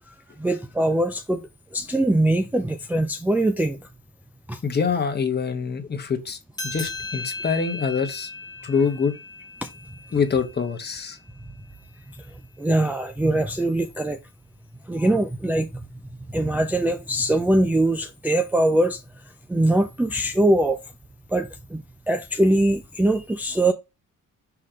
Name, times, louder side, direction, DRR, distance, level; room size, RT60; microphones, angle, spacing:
voice 1, 0.4-1.4 1.7-3.8 4.5-4.6 12.6-14.2 14.9-15.8 16.3-19.0 19.5-20.8 21.3-23.7, right 1 dB, 5° right, 0.5 m, -22 dB
voice 2, 4.6-6.4 6.6-8.3 8.6-9.1 10.1-11.2, left 5 dB, 30° left, 1.2 m, -25 dB
sound 1, 6.5-11.4, left 3 dB, 10° left, 1.7 m, -37 dB
5.9 x 3.2 x 5.0 m
cardioid pair, 150°, 34 cm